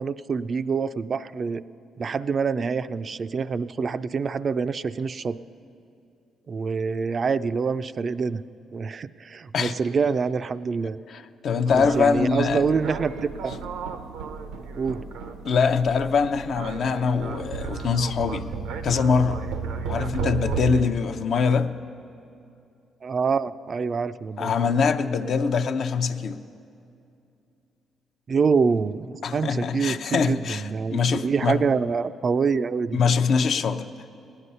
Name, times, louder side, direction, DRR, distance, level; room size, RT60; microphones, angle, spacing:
voice 1, 0.0-1.6 2.0-5.4 6.5-8.4 8.7-11.0 11.7-13.5 14.8-15.0 23.0-24.5 28.3-33.0, right 5 dB, 50° right, 13 dB, 0.4 m, -26 dB
voice 2, 11.1-12.6 15.4-18.5 18.8-19.4 19.9-21.7 24.4-26.4 29.2-30.6 30.9-31.6 32.9-33.8, left 5 dB, 65° left, 8 dB, 0.6 m, -23 dB
sound 1, 11.7-20.8, right 5 dB, 90° right, 0.6 m, -33 dB
17.0 x 9.8 x 5.5 m, 2.6 s
supercardioid pair, 65°, 0 cm